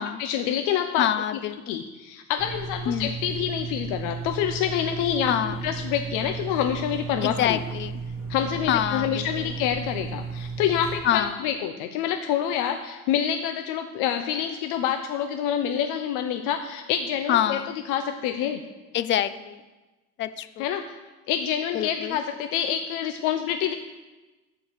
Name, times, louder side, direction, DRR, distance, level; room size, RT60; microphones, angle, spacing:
voice 1, 0.2-1.1 1.7-7.6 8.3-17.6 17.9-18.6 20.6-21.0 21.3-23.7, left 9 dB, 75° left, 6 dB, 0.7 m, -27 dB
voice 2, 1.0-1.8 2.9-3.1 5.3-5.6 7.2-8.0 8.7-9.5 11.0-11.4 17.3-17.7 18.9-19.6 20.2-20.6 21.7-22.2, left 10 dB, 35° left, 13 dB, 0.5 m, -26 dB
sound 1, 2.4-11.0, right 5 dB, 10° right, 2.5 m, -34 dB
13.0 x 4.6 x 6.6 m, 1.2 s
cardioid pair, 150°, 31 cm